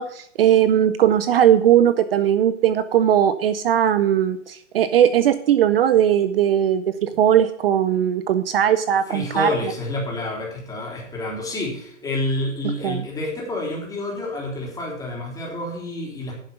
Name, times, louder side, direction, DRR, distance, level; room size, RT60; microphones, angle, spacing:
voice 1, 0.0-9.5 12.8-13.0, right 10 dB, 50° right, 13 dB, 0.6 m, -18 dB
voice 2, 9.1-16.3, left 2 dB, 10° left, -3 dB, 3.5 m, -28 dB
11.0 x 7.7 x 5.7 m, 0.66 s
hypercardioid pair, 145°, 38 cm